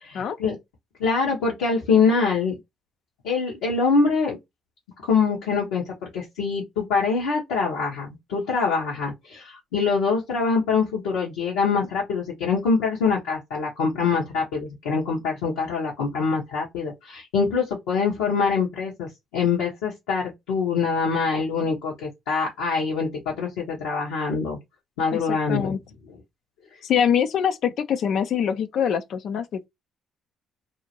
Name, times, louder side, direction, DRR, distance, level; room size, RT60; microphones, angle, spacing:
voice 1, 0.0-0.6 1.0-2.6 3.2-4.4 5.0-24.6 25.0-25.7, left 5 dB, 80° left, 1.0 m, -24 dB
voice 2, 25.1-25.8 26.8-29.7, left 8 dB, 65° left, 0.4 m, -24 dB
2.7 x 2.4 x 2.8 m
hypercardioid pair, 50°, 0 cm